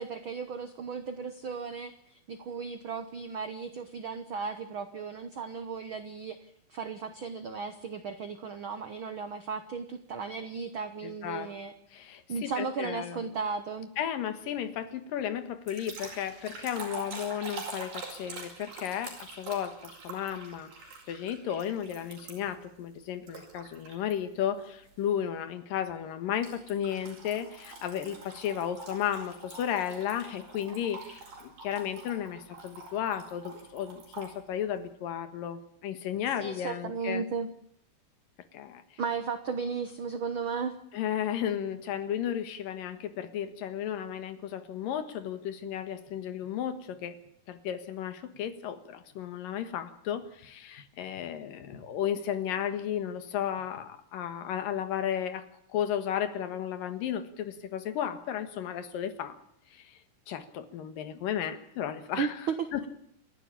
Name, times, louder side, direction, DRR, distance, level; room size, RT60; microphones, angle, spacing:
voice 1, 0.0-6.4 6.7-11.7 12.0-13.9 36.4-37.5 39.0-40.8 62.2-62.9, right 5 dB, 65° right, 10 dB, 1.2 m, -35 dB
voice 2, 11.0-11.5 11.9-13.2 14.0-37.2 38.5-39.0 40.9-47.2 47.5-59.3 59.7-60.0 60.3-62.9, left 9 dB, 90° left, 10 dB, 3.2 m, -34 dB
sound 1, 15.7-22.6 23.3-24.1 24.6-24.9 26.4-34.4, right 3 dB, 90° right, 7.0 m, -45 dB
28.5 x 11.5 x 8.6 m, 0.72 s
omnidirectional pair, 3.8 m